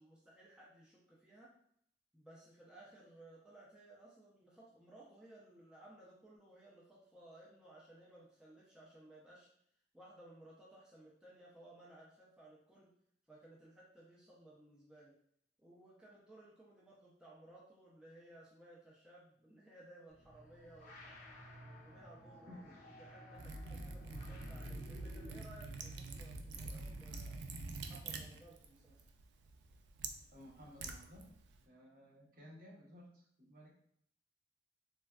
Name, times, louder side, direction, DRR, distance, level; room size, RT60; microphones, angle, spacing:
voice 1, 0.0-1.5 2.1-9.5 9.9-12.9 13.3-15.1 15.6-21.2 21.6-27.5 27.8-29.0, right 1 dB, 5° right, -6 dB, 0.4 m, -59 dB
sound 1, 20.1-25.6, equal, 50° left, 0.5 m, -55 dB
Liquid, 23.3-31.6, right 3 dB, 75° right, 0.3 m, -47 dB
voice 2, 30.0-31.3 31.7-33.7, equal, 55° right, -4 dB, 0.8 m, -57 dB
3.3 x 2.1 x 2.3 m, 0.69 s
head